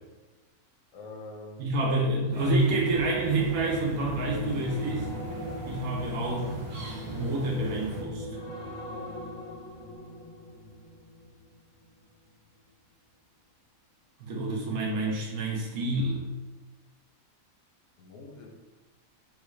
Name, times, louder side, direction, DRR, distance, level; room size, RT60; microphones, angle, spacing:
voice 1, 0.9-1.8 18.0-18.5, left 2 dB, 70° left, 1 dB, 0.9 m, -44 dB
voice 2, 1.6-5.1 5.6-6.5 7.1-8.3 14.2-16.2, right 2 dB, 85° right, -1 dB, 1.2 m, -28 dB
sound 1, 2.3-8.0, right 2 dB, 50° right, 1.0 m, -42 dB
sound 2, 2.5-11.8 12.2-12.5, equal, 85° left, 1.3 m, -40 dB
3.9 x 2.3 x 3.0 m, 1.2 s
omnidirectional pair, 1.4 m